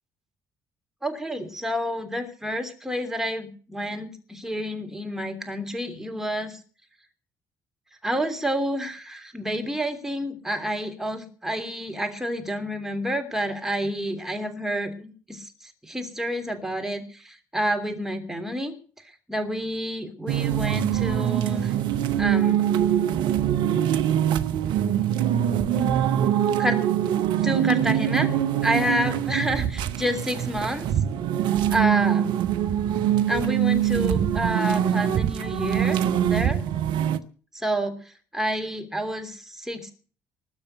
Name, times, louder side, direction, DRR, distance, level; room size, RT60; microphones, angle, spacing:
voice 1, 1.0-6.6 8.0-15.5 15.8-18.7 19.3-21.7 22.2-22.6 26.6-26.9 27.4-28.3 28.6-30.9 31.7-32.4 33.3-36.6 37.5-38.0 38.3-39.9, equal, 5° right, 5 dB, 3.1 m, -29 dB
sound 1, 20.3-37.2, right 10 dB, 60° right, 0.8 m, -23 dB
20.0 x 6.8 x 7.9 m, 0.40 s
figure-of-eight pair, 50°, 9 cm